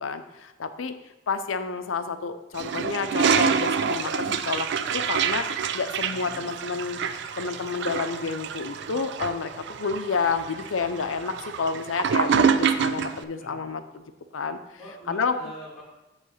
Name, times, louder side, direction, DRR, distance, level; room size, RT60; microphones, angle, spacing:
voice 1, 0.0-0.9 1.3-4.7 4.9-7.0 7.4-14.0 14.3-14.6 15.1-15.3, left 5 dB, 85° left, 10 dB, 0.6 m, -30 dB
Toilet flush, 2.5-13.2, right 6 dB, 60° right, 0.4 m, -27 dB
voice 2, 6.1-6.5 13.4-13.6 14.8-15.8, right 1 dB, ahead, -6 dB, 2.4 m, -44 dB
8.2 x 3.2 x 6.4 m, 1.0 s
head